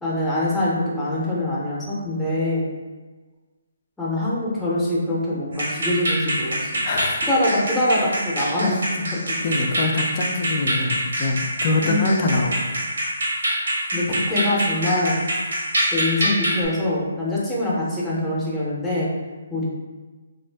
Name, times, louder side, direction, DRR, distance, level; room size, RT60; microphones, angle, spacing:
voice 1, 0.0-2.6 4.0-6.8 7.3-8.8 9.1-9.4 11.8-12.3 13.9-15.2 15.9-19.1 19.5-19.6, left 1 dB, 5° left, -7 dB, 0.7 m, -24 dB
sound 1, 5.5-16.7, right 1 dB, 80° right, 1.0 m, -25 dB
voice 2, 6.8-7.3 9.4-12.8, left 3 dB, 35° left, 1 dB, 0.4 m, -24 dB
2.6 x 2.4 x 3.3 m, 1.3 s
hypercardioid pair, 160°, 0 cm